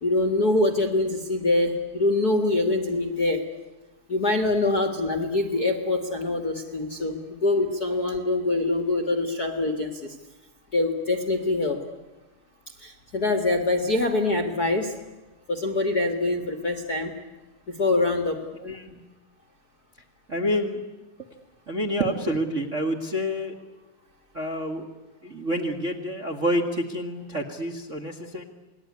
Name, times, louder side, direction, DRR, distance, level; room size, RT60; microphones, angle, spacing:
voice 1, 0.0-3.4 4.1-10.1 10.7-11.8 12.8-14.9 15.5-17.1 17.8-18.4, left 2 dB, 40° left, 5 dB, 1.6 m, -24 dB
voice 2, 18.6-19.0 20.3-20.8 21.7-23.5 24.3-24.9 25.2-28.4, equal, 30° right, 3 dB, 1.4 m, -28 dB
28.0 x 20.0 x 9.7 m, 1.1 s
omnidirectional pair, 3.9 m